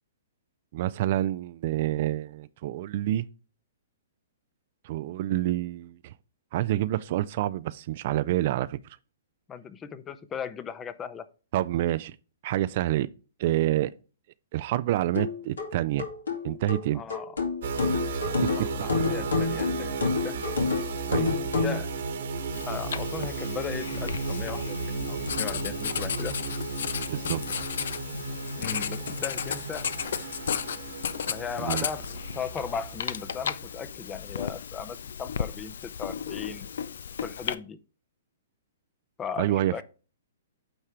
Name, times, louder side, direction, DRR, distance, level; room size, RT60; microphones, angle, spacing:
voice 1, 0.7-3.3 4.9-6.0 6.5-8.8 11.5-12.1 12.4-13.1 13.4-13.9 14.5-16.1 16.4-17.0 18.1-18.7 21.1-21.3 27.1-27.6 31.6-31.8 39.4-39.8, right 14 dB, 50° right, 0.4 m, -27 dB
voice 2, 9.5-11.3 16.9-17.4 18.6-20.4 21.5-21.9 22.6-26.3 28.6-29.9 31.3-36.7 37.2-37.8 39.2-39.8, left 7 dB, 20° left, 0.6 m, -37 dB
sound 1, 15.1-21.8, left 4 dB, 85° left, 2.0 m, -29 dB
sound 2, 17.6-33.9, right 4 dB, 65° right, 1.4 m, -34 dB
Writing, 22.5-37.5, left 7 dB, 70° left, 0.5 m, -34 dB
8.8 x 3.2 x 4.8 m
hypercardioid pair, 130°, 0 cm